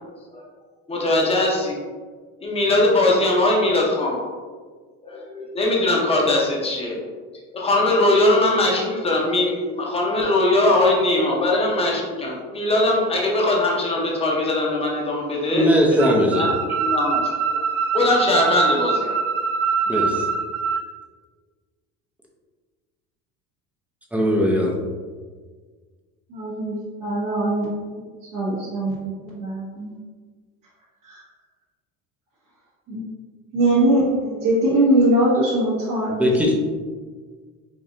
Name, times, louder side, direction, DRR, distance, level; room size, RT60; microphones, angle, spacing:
voice 1, 0.9-1.8 2.4-4.2 5.0-7.0 7.5-16.5 16.8-17.2 17.5-17.6 17.9-19.2, left 2 dB, 15° left, -2 dB, 0.9 m, -21 dB
voice 2, 15.5-16.4 19.9-20.3 24.1-24.8 36.1-36.5, equal, 5° right, -1 dB, 0.6 m, -19 dB
sound 1, 16.0-20.8, right 5 dB, 45° right, 0.4 m, -23 dB
voice 3, 26.3-27.8 28.3-29.9 31.1-31.2 32.9-33.0 33.5-36.3, right 1 dB, 65° right, -8 dB, 1.4 m, -21 dB
5.1 x 2.6 x 2.6 m, 1.5 s
supercardioid pair, 110°, 34 cm